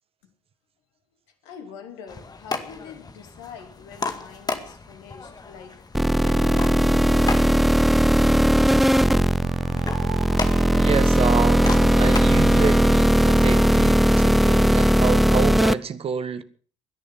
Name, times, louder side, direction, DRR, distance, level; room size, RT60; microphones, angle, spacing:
voice 1, 1.4-5.9 6.2-8.0, left 6 dB, 70° left, 2.7 m, -42 dB
sound 1, 2.1-12.9, left 4 dB, 25° left, 2.0 m, -35 dB
sound 2, 5.9-15.7, equal, ahead, 0.6 m, -18 dB
sound 3, 8.6-13.7, right 13 dB, 65° right, 0.8 m, -39 dB
voice 2, 10.7-16.4, right 7 dB, 40° right, 1.5 m, -28 dB
21.5 x 10.5 x 5.6 m
figure-of-eight pair, 50°, 15 cm